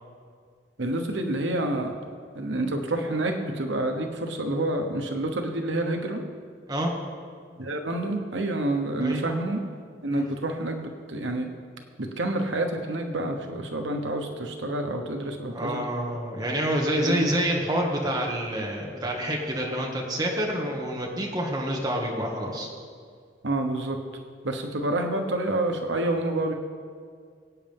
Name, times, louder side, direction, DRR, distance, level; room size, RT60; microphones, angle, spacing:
voice 1, 0.8-1.9 2.3-6.2 7.6-9.6 10.0-11.5 12.0-15.8 17.0-17.3 23.4-24.0 24.4-26.5, right 1 dB, 90° right, 4 dB, 1.2 m, -28 dB
voice 2, 15.5-22.7, equal, 20° right, -2 dB, 1.8 m, -27 dB
22.5 x 8.8 x 3.6 m, 2.1 s
head